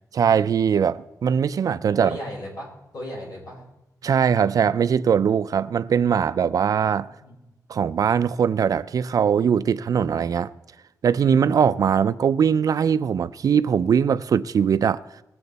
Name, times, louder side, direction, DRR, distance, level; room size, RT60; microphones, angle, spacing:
voice 1, 0.1-2.1 4.0-7.1 7.7-10.5 11.0-15.0, right 7 dB, 65° right, 0.4 m, -21 dB
voice 2, 1.9-3.6 7.0-7.3, equal, 65° left, 5.1 m, -36 dB
20.5 x 7.7 x 4.1 m
wide cardioid pair, 145°, 7 cm